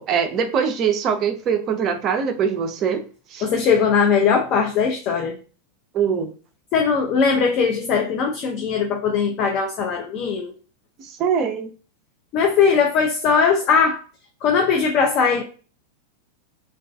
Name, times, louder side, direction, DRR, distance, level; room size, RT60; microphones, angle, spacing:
voice 1, 0.0-3.0 3.3-3.5 5.9-6.3 11.0-11.7, right 7 dB, 30° right, 0.4 m, -22 dB
voice 2, 3.4-5.4 6.7-10.5 12.3-14.0 14.4-15.4, left 6 dB, 40° left, 0.4 m, -19 dB
2.2 x 2.2 x 2.5 m
figure-of-eight pair, 90°, 0 cm